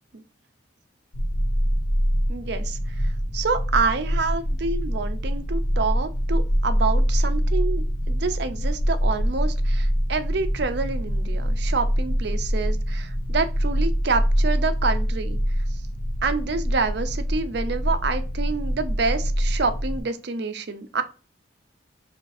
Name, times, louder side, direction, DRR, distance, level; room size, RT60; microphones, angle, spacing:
sound 1, 1.1-20.0, equal, 40° left, 0.6 m, -24 dB
voice 1, 2.3-15.4 16.2-21.0, right 4 dB, 55° right, 9 dB, 0.5 m, -27 dB
4.8 x 3.2 x 2.6 m, 0.34 s
head